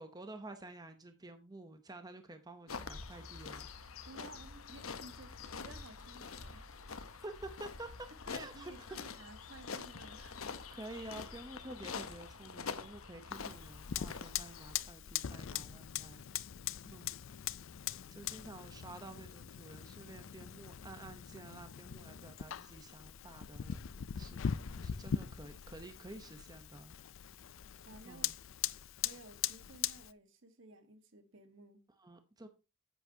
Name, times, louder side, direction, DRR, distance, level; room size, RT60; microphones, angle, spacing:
voice 1, 0.0-3.7 7.2-7.9 8.3-8.7 10.7-16.3 16.9-17.2 18.1-23.8 24.2-26.9 28.1-28.3 32.0-32.5, right 2 dB, 20° right, 0.8 m, -50 dB
sound 1, 2.7-14.8, left 5 dB, 85° left, 0.9 m, -46 dB
voice 2, 4.1-6.7 8.1-10.4 16.8-17.1 27.8-28.3 29.0-31.8, right 2 dB, 65° right, 1.4 m, -55 dB
Fire, 13.3-30.1, left 9 dB, 70° left, 0.4 m, -41 dB
10.0 x 8.4 x 2.8 m
head